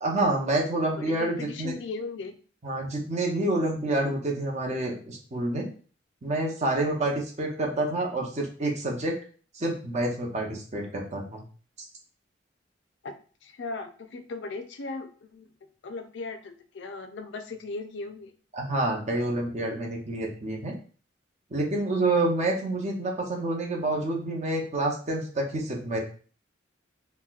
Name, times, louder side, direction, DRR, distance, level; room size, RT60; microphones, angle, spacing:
voice 1, 0.0-1.7 2.6-5.7 6.2-9.1 9.6-11.4 18.5-20.7 21.5-26.0, right 2 dB, 40° right, 0 dB, 0.7 m, -28 dB
voice 2, 0.9-2.3 13.0-13.1 13.4-15.5 15.8-18.3, left 3 dB, 65° left, 8 dB, 0.4 m, -37 dB
4.2 x 2.1 x 2.3 m, 0.40 s
head